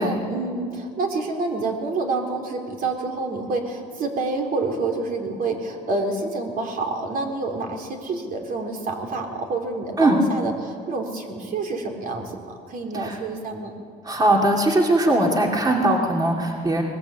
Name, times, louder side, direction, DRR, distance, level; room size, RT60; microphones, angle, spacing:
voice 1, 0.0-13.7, right 3 dB, 55° right, 2 dB, 3.7 m, -28 dB
voice 2, 14.0-16.8, right 1 dB, 25° right, 0 dB, 2.5 m, -20 dB
21.0 x 20.0 x 8.4 m, 2.2 s
cardioid pair, 110°, 17 cm